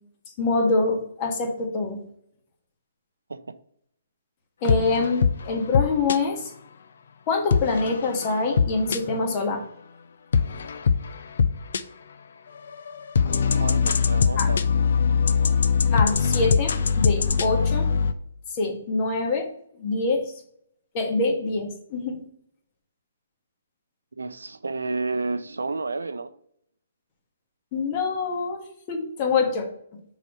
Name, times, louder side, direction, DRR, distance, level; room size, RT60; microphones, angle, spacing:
voice 1, 0.4-2.0 4.6-6.5 7.3-9.6 14.4-14.5 15.9-17.9 18.5-19.5 19.8-20.2 20.9-22.2 27.7-28.6 28.9-29.7, left 3 dB, 30° left, 1.7 m, -25 dB
sound 1, 4.7-6.2 7.5-9.3 10.3-11.8 12.5-18.1, left 6 dB, 60° left, 0.5 m, -22 dB
voice 2, 13.6-14.6 24.2-26.3, right 3 dB, 75° right, 0.6 m, -30 dB
6.8 x 4.1 x 4.5 m
figure-of-eight pair, 130°, 0 cm